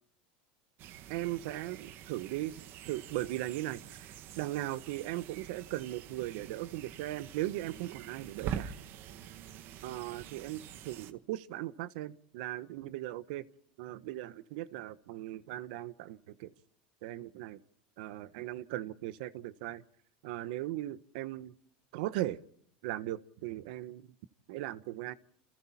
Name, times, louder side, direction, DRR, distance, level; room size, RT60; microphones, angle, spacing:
sound 1, 0.8-11.1, right 10 dB, 55° right, 1.7 m, -45 dB
voice 1, 1.1-2.6 2.9-8.7 9.8-13.5 13.8-16.5 17.0-17.6 18.0-19.8 20.2-21.5 21.9-22.4 22.8-24.1 24.5-25.1, right 15 dB, 75° right, 15 dB, 1.2 m, -38 dB
29.0 x 27.5 x 4.4 m, 0.66 s
supercardioid pair, 110°, 4 cm